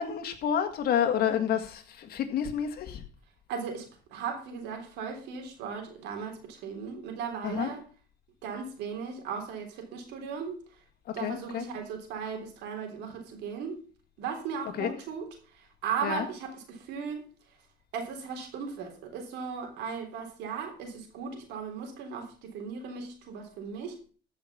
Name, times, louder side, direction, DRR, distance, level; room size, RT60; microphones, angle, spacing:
voice 1, 0.0-3.0 7.4-7.8 11.1-11.7 14.6-15.0 16.0-16.3, left 8 dB, 65° left, 1.9 m, -29 dB
voice 2, 3.5-7.8 8.4-10.6 11.1-13.8 14.2-15.3 15.6-17.2 17.9-24.1, right 6 dB, 85° right, 3.5 m, -37 dB
14.5 x 5.9 x 6.0 m
cardioid pair, 110°, 17 cm